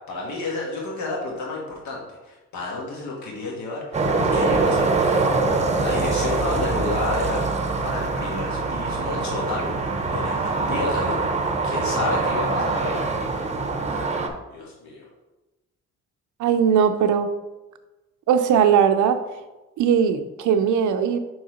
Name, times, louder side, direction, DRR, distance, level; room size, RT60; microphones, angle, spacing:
voice 1, 0.1-4.0 4.3-5.5 5.8-9.7 10.0-11.3 11.6-13.0 13.9-14.1 14.5-15.1, left 2 dB, 70° left, -3 dB, 1.7 m, -31 dB
sound 1, 3.9-14.3, right 3 dB, 25° right, 0.7 m, -24 dB
sound 2, 7.5-13.7, equal, 90° left, 2.1 m, -42 dB
voice 2, 16.4-17.3 18.3-19.2 19.8-21.2, right 7 dB, 75° right, 9 dB, 0.6 m, -19 dB
4.8 x 3.9 x 5.1 m, 1.1 s
cardioid pair, 90°, 30 cm